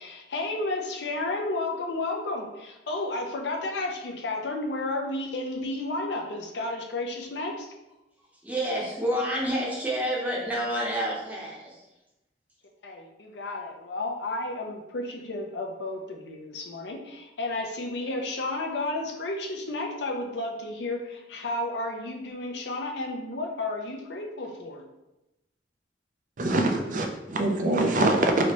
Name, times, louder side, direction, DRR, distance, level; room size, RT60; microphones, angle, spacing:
voice 1, 0.0-7.7 12.8-24.8, left 2 dB, 65° left, 2 dB, 0.5 m, -32 dB
voice 2, 8.4-11.8, equal, 10° right, -5 dB, 0.7 m, -29 dB
voice 3, 26.4-28.5, right 2 dB, 45° right, 3 dB, 0.4 m, -24 dB
3.2 x 2.7 x 2.9 m, 0.96 s
head